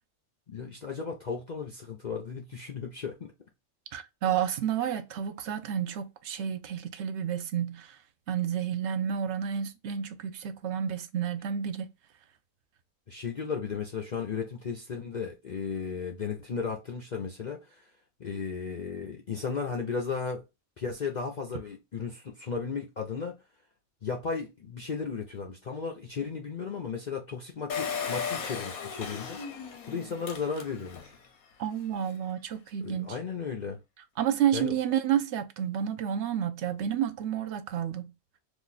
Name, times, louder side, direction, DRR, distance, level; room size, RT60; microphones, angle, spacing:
voice 1, 0.5-3.3 13.1-17.8 18.2-20.4 20.8-23.4 24.0-31.2 32.8-33.8 34.5-34.7, left 5 dB, 60° left, 0.4 m, -35 dB
voice 2, 3.9-8.0 8.3-11.9 31.6-33.2 34.2-38.1, right 9 dB, 65° right, 0.8 m, -30 dB
Engine, 27.7-31.2 31.6-31.7 31.9-32.0, left 6 dB, 85° left, 1.2 m, -36 dB
3.0 x 2.5 x 3.9 m
omnidirectional pair, 1.5 m